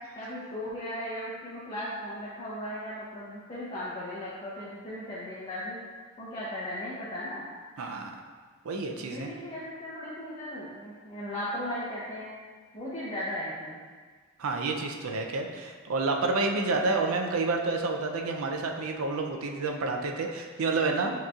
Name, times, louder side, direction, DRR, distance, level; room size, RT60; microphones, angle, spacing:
voice 1, 0.2-5.8 6.2-7.4 9.0-12.3 12.7-13.8, left 1 dB, 30° left, -8 dB, 0.7 m, -37 dB
voice 2, 7.8-8.2 8.6-9.3 14.4-21.1, right 3 dB, 85° right, 3 dB, 0.5 m, -29 dB
6.3 x 3.0 x 2.3 m, 1.5 s
head